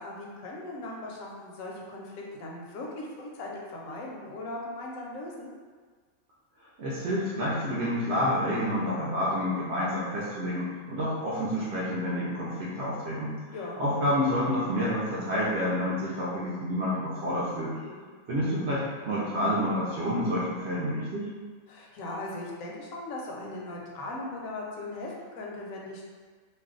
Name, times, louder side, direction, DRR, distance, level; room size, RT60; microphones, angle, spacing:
voice 1, 0.0-5.5 13.5-13.8 17.7-18.1 21.7-26.1, left 2 dB, 75° left, -2 dB, 0.9 m, -39 dB
voice 2, 6.8-13.3 13.8-17.7 18.3-21.3, equal, 60° right, -8 dB, 0.8 m, -29 dB
2.6 x 2.2 x 3.6 m, 1.5 s
omnidirectional pair, 1.5 m